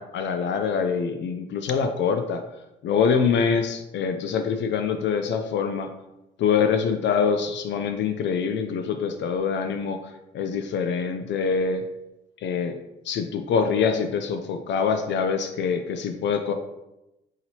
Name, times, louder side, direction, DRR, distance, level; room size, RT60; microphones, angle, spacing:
voice 1, 0.0-2.4 2.8-5.9 6.4-10.0 10.3-11.8 12.4-12.8 13.0-16.5, left 6 dB, 65° left, 7 dB, 0.4 m, -24 dB
5.7 x 2.9 x 2.7 m, 0.93 s
cardioid pair, 90°, 20 cm